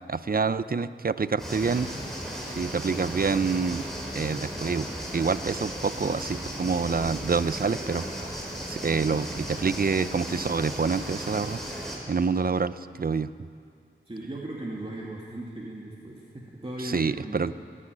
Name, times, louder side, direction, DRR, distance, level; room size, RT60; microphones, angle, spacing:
voice 1, 0.0-1.9 2.5-3.8 4.1-4.9 5.1-11.6 12.1-13.3 16.8-17.5, right 5 dB, 45° right, 14 dB, 0.6 m, -27 dB
sound 1, 1.4-12.0, equal, ahead, 4.8 m, -35 dB
voice 2, 14.1-17.4, right 1 dB, 25° right, -4 dB, 2.6 m, -37 dB
28.0 x 10.0 x 10.0 m, 2.2 s
wide cardioid pair, 80°, 20 cm